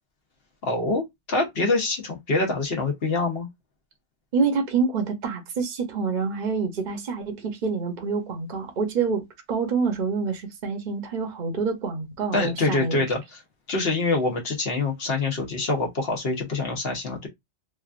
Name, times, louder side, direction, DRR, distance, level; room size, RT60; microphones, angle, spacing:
voice 1, 0.6-3.5 12.3-13.4 13.7-17.3, left 3 dB, 60° left, 1.1 m, -25 dB
voice 2, 4.3-13.0, right 5 dB, 50° right, 0.8 m, -27 dB
3.2 x 2.4 x 2.4 m
omnidirectional pair, 1.2 m